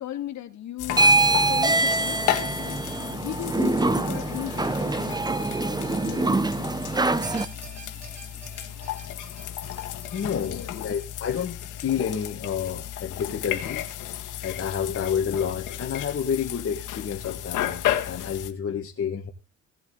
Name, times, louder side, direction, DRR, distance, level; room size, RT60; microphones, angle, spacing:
voice 1, 0.0-6.5 10.4-10.9, left 11 dB, 65° left, 2.4 m, -37 dB
sound 1, 0.8-18.5, left 12 dB, 85° left, 1.8 m, -33 dB
sound 2, 0.9-7.5, right 3 dB, 15° right, 0.8 m, -24 dB
sound 3, 7.2-13.6, right 6 dB, 60° right, 2.9 m, -48 dB
voice 2, 10.1-13.9 14.4-19.3, left 7 dB, 50° left, 2.0 m, -29 dB
17.0 x 8.1 x 4.1 m
cardioid pair, 90°, 30 cm